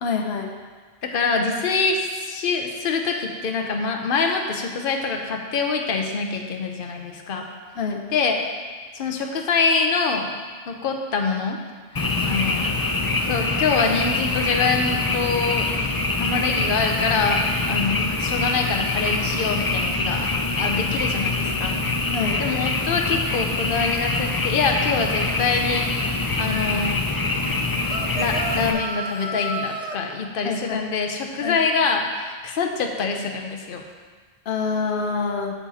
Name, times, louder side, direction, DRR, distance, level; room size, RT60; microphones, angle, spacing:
voice 1, 0.0-0.5 7.8-8.0 22.1-22.4 30.4-30.9 31.4-31.6 34.5-35.5, left 5 dB, 85° left, 3 dB, 1.0 m, -26 dB
voice 2, 1.0-7.5 8.1-8.4 8.9-10.3 10.7-11.6 11.9-12.7 13.3-15.7 16.2-21.8 22.4-27.0 28.1-33.8, left 4 dB, 60° left, 3 dB, 1.0 m, -25 dB
Frog, 12.0-28.7, left 3 dB, 30° left, 0.5 m, -24 dB
sound 1, 27.9-30.0, right 2 dB, 45° right, 0.6 m, -31 dB
8.3 x 7.3 x 4.1 m, 1.5 s
omnidirectional pair, 1.0 m